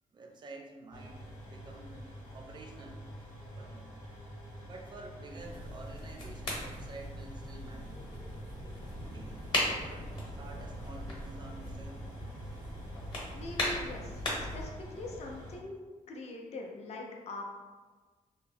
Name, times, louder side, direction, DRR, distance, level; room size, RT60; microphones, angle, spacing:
voice 1, 0.1-2.1 2.3-3.0 3.6-3.9 4.6-7.9 9.0-12.1, right 2 dB, 35° right, 3 dB, 0.4 m, -50 dB
sound 1, 0.9-15.6, equal, 75° left, 0.8 m, -48 dB
sound 2, 5.3-14.7, left 1 dB, 35° left, 0.9 m, -38 dB
sound 3, 8.8-15.5, right 1 dB, 85° right, 0.5 m, -50 dB
voice 2, 13.3-14.1 14.5-15.8 16.1-17.4, left 2 dB, 55° left, 1 dB, 0.4 m, -42 dB
2.9 x 2.0 x 2.5 m, 1.4 s
cardioid pair, 120°, 14 cm